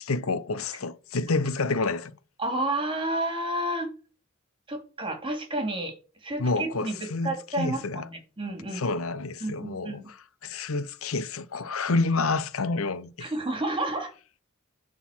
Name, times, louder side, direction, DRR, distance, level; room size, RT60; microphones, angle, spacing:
voice 1, 0.0-2.1 6.4-8.0 8.7-10.0 10.4-13.3, left 3 dB, 85° left, 0.8 m, -28 dB
voice 2, 2.4-3.9 4.7-5.9 6.2-8.8 9.4-10.1 13.2-14.1, right 1 dB, 25° right, 2.8 m, -30 dB
11.0 x 4.1 x 7.3 m
head